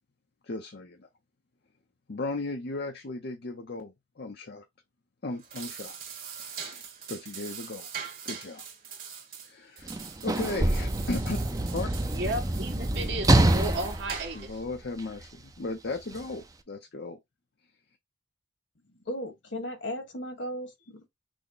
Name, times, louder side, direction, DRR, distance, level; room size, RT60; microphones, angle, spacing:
voice 1, 0.4-1.1 2.1-4.6 5.2-6.0 6.4-7.9 8.2-8.7 9.4-11.4 11.7-11.9 14.3-17.2, left 2 dB, 60° left, 0.7 m, -36 dB
sound 1, 5.3-14.6, right 7 dB, 50° right, 2.1 m, -43 dB
Sliding door / Slam, 9.8-15.2 16.1-16.3, right 1 dB, 20° right, 0.6 m, -26 dB
voice 2, 12.1-14.6, right 1 dB, 70° right, 1.7 m, -34 dB
voice 3, 18.9-21.1, equal, 80° left, 1.6 m, -36 dB
6.2 x 2.2 x 3.9 m
head